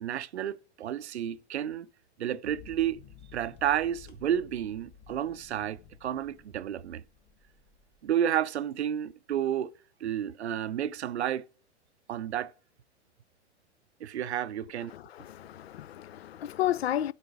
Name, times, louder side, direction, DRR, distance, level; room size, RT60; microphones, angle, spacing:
voice 1, 0.0-1.9 2.2-3.0 3.3-7.0 8.0-9.7 10.0-11.4 12.1-12.5 14.0-14.9, right 10 dB, 70° right, 0.6 m, -31 dB
sound 1, 2.5-8.0, left 7 dB, 30° left, 1.3 m, -53 dB
voice 2, 14.9-17.1, left 12 dB, 60° left, 0.5 m, -32 dB
8.5 x 8.2 x 6.1 m
figure-of-eight pair, 100°, 35 cm